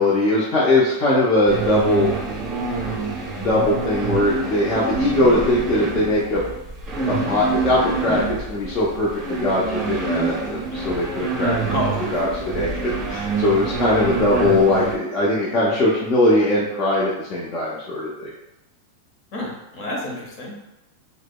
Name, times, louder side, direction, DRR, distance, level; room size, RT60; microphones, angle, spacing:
voice 1, 0.0-2.1 3.4-6.4 7.0-11.8 12.1-18.3, left 1 dB, 30° left, -6 dB, 0.6 m, -20 dB
sound 1, 1.5-15.0, right 4 dB, 20° right, 0.7 m, -27 dB
voice 2, 11.7-12.1 19.3-20.6, left 1 dB, 50° left, -2 dB, 1.1 m, -28 dB
4.8 x 2.0 x 2.2 m, 0.95 s
supercardioid pair, 135°, 0 cm